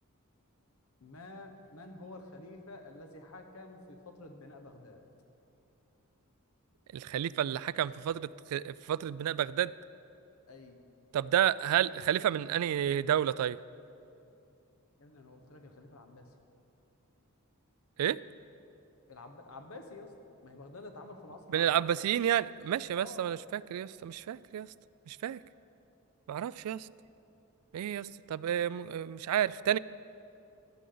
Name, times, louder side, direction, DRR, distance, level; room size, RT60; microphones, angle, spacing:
voice 1, 1.0-5.0 10.5-10.8 15.0-16.3 19.1-20.1 20.4-22.0 22.9-23.2, left 2 dB, 75° left, 5 dB, 1.2 m, -49 dB
voice 2, 6.9-9.7 11.1-13.6 18.0-18.2 21.5-24.7 25.1-25.4 26.3-26.9 27.7-29.8, right 10 dB, 90° right, 18 dB, 0.3 m, -30 dB
15.5 x 12.5 x 3.9 m, 2.7 s
head